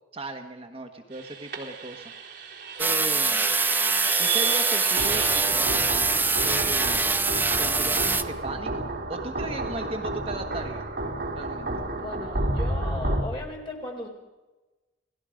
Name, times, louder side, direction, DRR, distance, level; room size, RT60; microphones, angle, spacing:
voice 1, 0.1-2.1 2.8-3.5 4.2-5.9 6.4-7.2 7.6-8.8 9.1-10.9 11.3-11.7, right 2 dB, 30° right, 4 dB, 1.3 m, -36 dB
sound 1, 1.1-13.2, right 2 dB, 60° right, 4.0 m, -31 dB
sound 2, 2.8-8.2, right 3 dB, 10° right, 0.6 m, -24 dB
voice 2, 11.9-14.1, left 1 dB, 25° left, 1 dB, 4.4 m, -37 dB
29.0 x 17.5 x 5.1 m, 1.1 s
head